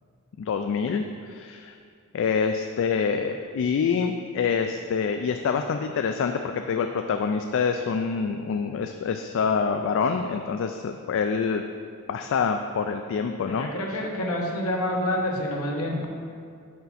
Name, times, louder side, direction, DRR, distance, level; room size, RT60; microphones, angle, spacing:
voice 1, 0.4-1.7 2.1-11.6 12.1-13.7, left 5 dB, 60° left, 6 dB, 0.3 m, -26 dB
voice 2, 13.4-16.1, left 1 dB, 80° left, -1 dB, 1.1 m, -28 dB
6.5 x 5.6 x 4.1 m, 2.2 s
head